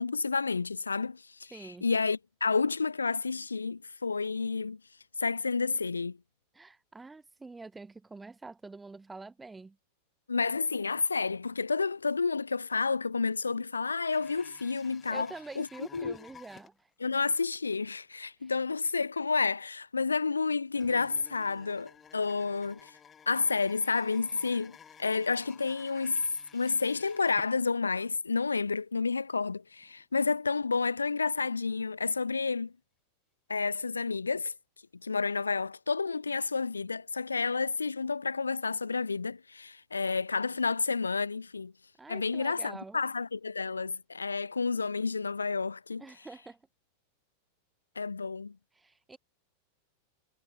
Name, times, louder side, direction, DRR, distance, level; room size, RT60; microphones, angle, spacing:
voice 1, 0.0-4.8 5.2-6.2 10.3-15.7 15.9-16.2 17.0-23.0 23.3-26.2 26.5-32.7 33.5-34.5 35.0-41.7 42.1-46.0 48.0-48.5, left 4 dB, 75° left, 0.3 m, -30 dB
voice 2, 1.5-1.9 6.5-9.8 15.1-16.9 18.4-18.5 42.0-43.0 46.0-46.6 48.8-49.2, right 3 dB, 10° right, 2.4 m, -46 dB
sound 1, 14.1-17.2 17.5-17.6 18.0-18.1 18.9-19.0 20.8-28.1 28.4-28.5 29.2-29.3 29.8-30.0 30.5-31.4 31.9-32.3 33.6-33.7 33.8-33.9, left 7 dB, 20° left, 1.2 m, -54 dB
figure-of-eight pair, 90°, 0 cm